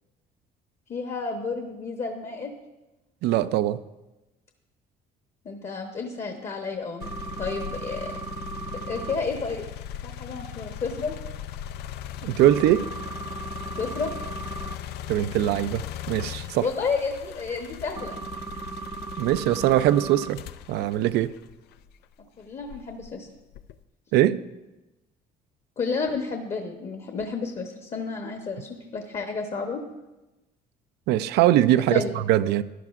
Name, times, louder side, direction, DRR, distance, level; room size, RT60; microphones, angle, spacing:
voice 1, 0.9-2.5 5.4-7.1 7.4-8.1 8.9-9.6 10.0-11.2 13.8-14.1 16.6-18.2 22.4-23.3 25.8-29.8 31.9-32.1, left 4 dB, 40° left, 4 dB, 1.0 m, -31 dB
voice 2, 3.2-3.8 12.2-12.9 15.1-16.7 19.2-20.4 20.7-21.3 24.1-24.4 31.1-32.6, right 13 dB, 85° right, 15 dB, 0.4 m, -21 dB
sound 1, 7.0-22.0 22.6-23.8, left 11 dB, 75° left, 0.4 m, -39 dB
sound 2, 7.0-9.2 12.4-14.7 18.0-20.3, right 4 dB, 20° right, 0.4 m, -37 dB
14.5 x 11.0 x 2.4 m, 1.0 s
cardioid pair, 110°, 17 cm